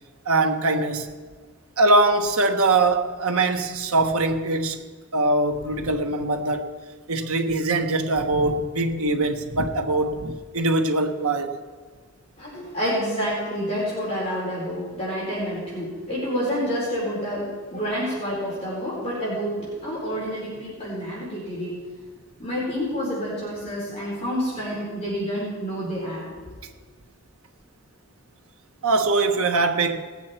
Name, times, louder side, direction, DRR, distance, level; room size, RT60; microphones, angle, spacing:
voice 1, 0.2-1.1 1.8-4.8 5.1-6.7 7.1-11.6 28.8-30.0, right 2 dB, 80° right, 1.2 m, -22 dB
voice 2, 12.4-21.8 22.4-26.3, equal, 30° left, 4.5 m, -28 dB
19.5 x 8.5 x 4.5 m
head